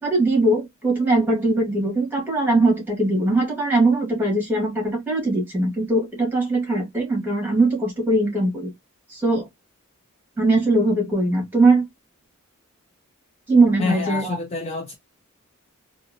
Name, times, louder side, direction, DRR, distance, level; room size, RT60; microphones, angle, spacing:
voice 1, 0.0-8.7 9.1-9.5 10.4-11.8 13.5-14.4, right 2 dB, 10° right, 1.3 m, -20 dB
voice 2, 13.8-14.9, left 4 dB, 30° left, 0.4 m, -27 dB
2.8 x 2.5 x 2.5 m
head